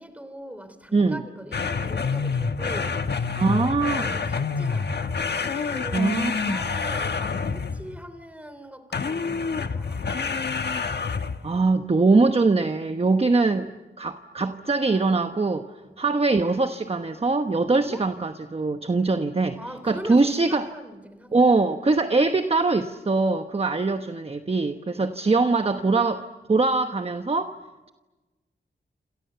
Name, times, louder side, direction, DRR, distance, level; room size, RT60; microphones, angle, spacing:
voice 1, 0.0-3.7 4.0-5.2 5.4-10.9 15.8-16.3 17.8-18.0 19.5-21.7 25.1-25.4, equal, 5° right, 10 dB, 3.5 m, -42 dB
sound 1, 1.5-8.0 8.9-11.5, left 5 dB, 65° left, 1.4 m, -27 dB
voice 2, 3.4-4.1 5.9-6.6 11.4-13.7 14.0-15.7 16.0-19.6 19.9-20.7 21.3-26.2 26.5-27.5, right 3 dB, 30° right, 7 dB, 1.1 m, -22 dB
28.0 x 28.0 x 6.9 m, 1.2 s
wide cardioid pair, 110°, 19 cm